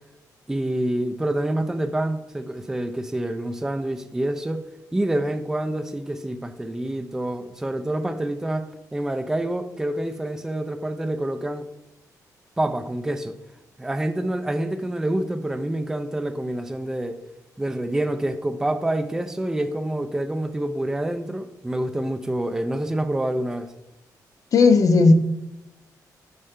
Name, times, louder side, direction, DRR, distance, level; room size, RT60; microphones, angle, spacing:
voice 1, 0.5-11.7 12.6-13.3 13.8-17.2 17.6-23.7, right 1 dB, 5° right, 0.3 m, -27 dB
voice 2, 24.5-25.1, left 4 dB, 55° left, 0.5 m, -14 dB
5.4 x 4.3 x 5.0 m
cardioid pair, 115°, 7 cm